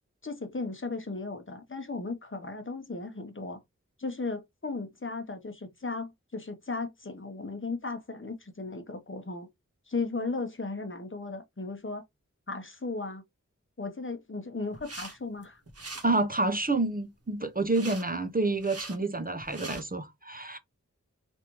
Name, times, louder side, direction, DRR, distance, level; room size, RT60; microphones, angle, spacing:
voice 1, 0.2-3.6 4.0-9.5 9.9-12.0 12.5-13.2 13.8-15.6, left 3 dB, 40° left, 0.9 m, -36 dB
sound 1, 14.7-15.2 15.4-16.1 17.7-18.0 18.5-19.0 19.4-19.8, right 3 dB, 50° right, 1.0 m, -42 dB
voice 2, 16.0-20.6, right 2 dB, 30° right, 0.6 m, -28 dB
3.2 x 2.6 x 2.9 m
wide cardioid pair, 40°, 30 cm